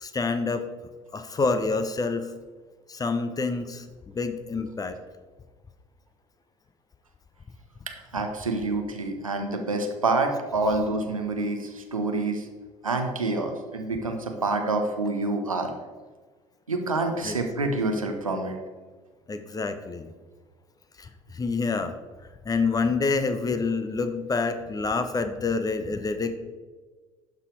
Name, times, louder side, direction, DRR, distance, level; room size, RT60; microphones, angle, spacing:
voice 1, 0.0-0.7 1.1-2.3 2.9-5.0 17.2-17.4 19.3-20.1 21.0-21.9 22.4-26.3, left 4 dB, 20° left, 9 dB, 0.7 m, -27 dB
voice 2, 7.9-12.5 12.8-15.7 16.7-18.6, right 2 dB, 85° right, 4 dB, 0.7 m, -27 dB
11.5 x 4.2 x 4.6 m, 1.4 s
figure-of-eight pair, 55°, 17 cm